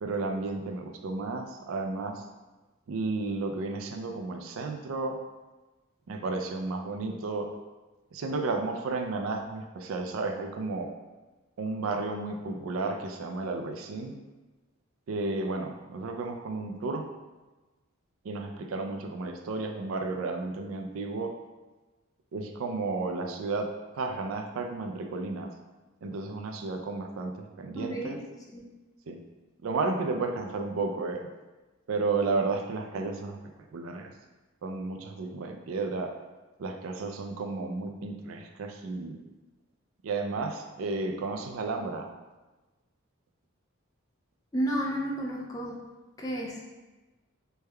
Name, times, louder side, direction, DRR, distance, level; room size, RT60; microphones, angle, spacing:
voice 1, 0.0-2.3 2.9-5.2 6.1-7.5 8.1-10.9 11.6-14.1 15.1-17.0 18.2-21.3 22.3-23.7 23.9-25.5 26.0-27.3 27.6-28.2 29.1-29.2 29.6-31.3 31.9-33.4 33.7-34.1 34.6-36.1 36.6-39.2 40.0-42.1, right 3 dB, 80° right, 4 dB, 0.4 m, -32 dB
voice 2, 27.7-28.2 28.5-28.6 44.5-45.8 46.2-46.6, right 1 dB, 15° left, -2 dB, 0.4 m, -31 dB
3.3 x 2.2 x 3.3 m, 1.2 s
head